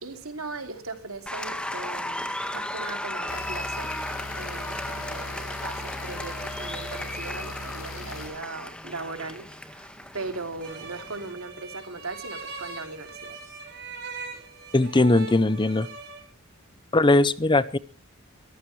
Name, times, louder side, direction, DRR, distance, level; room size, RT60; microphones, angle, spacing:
voice 1, 0.0-3.9 4.4-13.4, right 3 dB, 85° right, 6 dB, 2.9 m, -38 dB
Applause, 1.3-11.3, left 1 dB, 5° left, 1.6 m, -35 dB
sound 1, 3.3-8.3, left 2 dB, 85° left, 3.6 m, -39 dB
sound 2, 10.6-16.2, right 4 dB, 50° right, 5.4 m, -41 dB
voice 2, 14.7-15.9 16.9-17.8, left 2 dB, 20° left, 16 dB, 0.7 m, -20 dB
23.0 x 15.0 x 3.2 m, 0.35 s
head